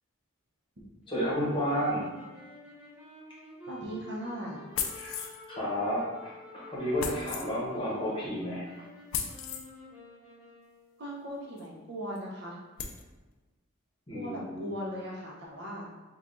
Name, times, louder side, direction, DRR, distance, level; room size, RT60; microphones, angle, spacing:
sound 1, 1.0-11.1, equal, 5° right, 1.0 m, -49 dB
voice 1, 1.1-2.1 4.9-8.6 14.1-14.7, equal, 25° left, -6 dB, 0.9 m, -32 dB
voice 2, 3.7-4.6 11.0-12.6 14.1-15.9, equal, 55° right, -3 dB, 0.7 m, -38 dB
sound 2, 4.7-5.4 7.0-7.5 9.1-9.7 11.6-11.7 12.2-12.3 12.8-13.0, left 7 dB, 75° left, 0.4 m, -35 dB
3.3 x 2.3 x 3.8 m, 1.2 s
head